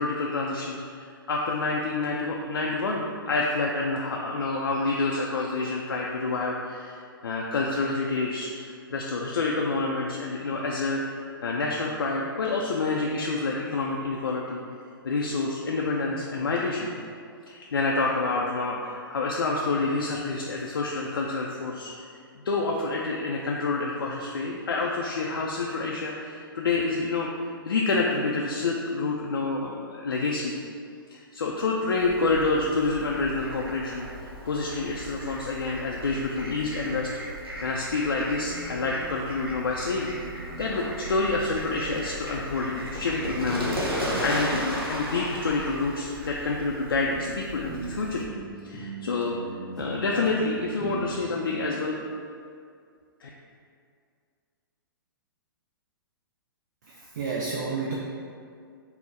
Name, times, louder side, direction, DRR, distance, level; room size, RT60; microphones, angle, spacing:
voice 1, 0.0-14.6 15.0-16.9 17.5-21.9 22.5-30.5 31.1-37.1 37.6-40.1 40.6-48.2 48.6-49.4 49.8-52.0 53.2-53.3, left 3 dB, 75° left, -2 dB, 0.4 m, -28 dB
Fowl, 31.9-48.2, equal, 80° right, 0.8 m, -36 dB
sound 1, 38.5-42.2 43.1-45.8 46.6-46.7 47.1-51.5, right 2 dB, 5° left, 0.6 m, -42 dB
voice 2, 56.8-57.9, right 4 dB, 50° right, -2 dB, 0.4 m, -31 dB
4.1 x 2.0 x 3.6 m, 2.3 s
figure-of-eight pair, 115°, 12 cm